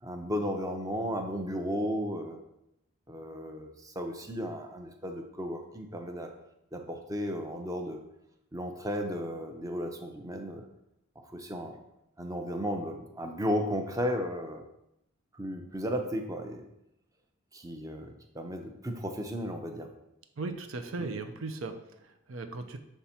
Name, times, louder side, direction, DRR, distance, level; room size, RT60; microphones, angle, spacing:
voice 1, 0.0-2.4 3.1-6.3 6.7-8.0 8.5-10.7 11.2-11.8 12.2-14.6 15.3-16.6 17.5-19.9 21.0-21.1, equal, 15° right, 4 dB, 0.6 m, -34 dB
voice 2, 20.4-22.8, right 3 dB, 75° right, 6 dB, 0.6 m, -38 dB
7.2 x 3.4 x 4.2 m, 0.83 s
head